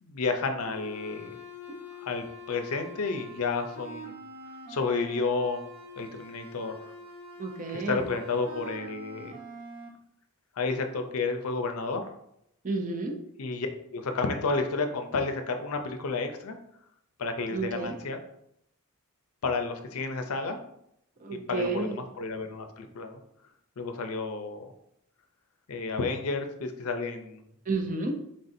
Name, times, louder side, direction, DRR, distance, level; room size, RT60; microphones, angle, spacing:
voice 1, 0.0-1.3 2.0-4.2 4.7-5.6 6.0-6.8 7.7-9.4 10.6-12.1 13.4-16.6 17.2-18.2 19.4-20.6 21.3-23.2 23.8-24.7 25.7-27.4, left 4 dB, 80° left, 6 dB, 0.5 m, -31 dB
sound 1, 0.6-9.9, equal, 70° right, 1.0 m, -45 dB
voice 2, 7.4-8.1 12.6-13.1 17.5-17.9 21.2-22.0 27.7-28.1, right 3 dB, 35° right, 4 dB, 0.5 m, -31 dB
4.1 x 3.4 x 2.6 m, 0.75 s
head